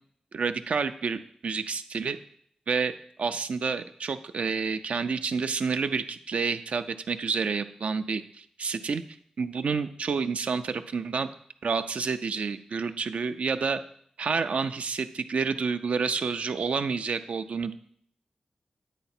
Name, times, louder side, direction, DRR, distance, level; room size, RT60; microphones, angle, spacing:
voice 1, 0.3-2.2 2.7-2.9 3.2-9.0 9.4-11.3 11.6-13.8 14.2-17.7, right 5 dB, 70° right, 10 dB, 0.4 m, -29 dB
9.1 x 4.0 x 4.3 m, 0.64 s
cardioid pair, 65°, 2 cm